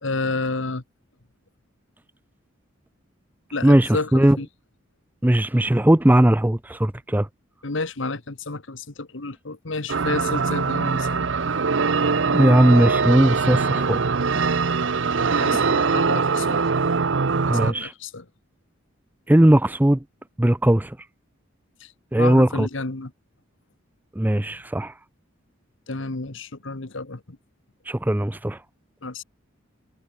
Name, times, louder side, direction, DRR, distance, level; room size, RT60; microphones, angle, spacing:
voice 1, 0.0-0.8 3.5-4.5 7.6-11.3 15.3-16.7 17.5-18.3 21.8-23.1 25.9-27.4 29.0-29.2, left 3 dB, 65° left, 1.5 m, -31 dB
voice 2, 3.6-4.4 5.2-7.3 12.3-14.0 14.3-14.4 17.5-17.9 19.3-20.0 20.4-21.0 22.1-22.7 24.2-24.9 27.9-28.6, right 1 dB, 10° right, 0.5 m, -18 dB
sound 1, 9.9-17.7, right 4 dB, 65° right, 0.7 m, -22 dB
head